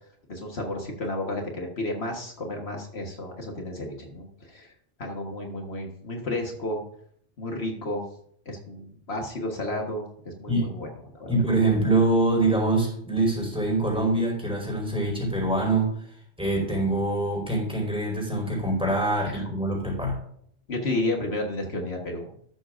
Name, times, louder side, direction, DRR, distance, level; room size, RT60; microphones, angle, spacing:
voice 1, 0.3-4.7 5.0-6.8 7.4-8.1 8.4-10.9 11.1-11.3 19.3-19.5 20.7-22.3, left 1 dB, 70° left, 1 dB, 1.7 m, -32 dB
voice 2, 11.3-15.9 16.4-20.2, right 2 dB, 5° right, -1 dB, 4.9 m, -24 dB
14.0 x 12.0 x 2.6 m, 0.67 s
omnidirectional pair, 1.1 m